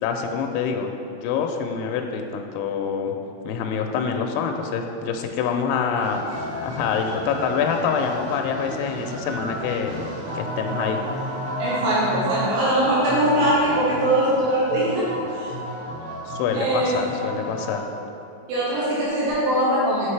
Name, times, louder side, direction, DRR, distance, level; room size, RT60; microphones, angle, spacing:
voice 1, 0.0-0.9 1.2-3.2 3.4-10.0 10.3-11.0 16.3-17.8, left 6 dB, 85° left, 3 dB, 2.5 m, -26 dB
sound 1, 6.0-17.8, equal, 65° right, 2.8 m, -32 dB
voice 2, 11.6-15.1 15.3-15.5 16.5-17.1 18.5-20.1, right 1 dB, 80° right, -8 dB, 3.4 m, -21 dB
7.9 x 5.5 x 3.3 m, 2.6 s
omnidirectional pair, 4.9 m